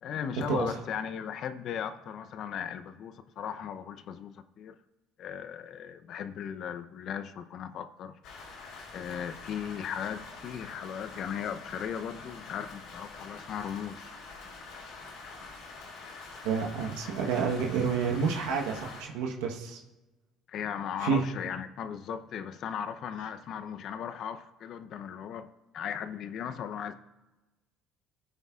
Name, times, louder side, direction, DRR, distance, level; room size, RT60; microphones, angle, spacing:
voice 1, 0.0-4.7 5.2-8.2 8.9-14.1 20.5-26.9, left 8 dB, 60° left, 10 dB, 0.7 m, -37 dB
Rain, 8.2-19.0, left 4 dB, 75° left, 3.9 m, -46 dB
voice 2, 16.4-19.8 21.0-21.3, right 6 dB, 85° right, 1 dB, 1.2 m, -29 dB
16.5 x 8.7 x 2.4 m, 1.1 s
supercardioid pair, 85°, 0 cm